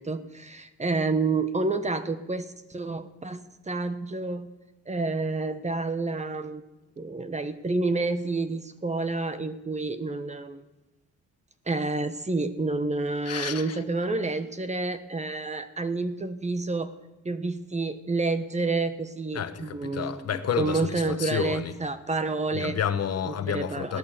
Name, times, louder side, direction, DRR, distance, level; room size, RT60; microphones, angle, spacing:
voice 1, 0.0-4.5 4.9-6.6 7.0-10.6 11.7-16.9 17.2-20.2 20.6-22.7 23.5-24.0, right 3 dB, 20° right, 10 dB, 1.2 m, -29 dB
voice 2, 13.2-13.8 19.3-21.8 22.5-24.0, left 8 dB, 55° left, 10 dB, 1.2 m, -30 dB
17.0 x 12.5 x 6.8 m, 1.0 s
cardioid pair, 90°, 30 cm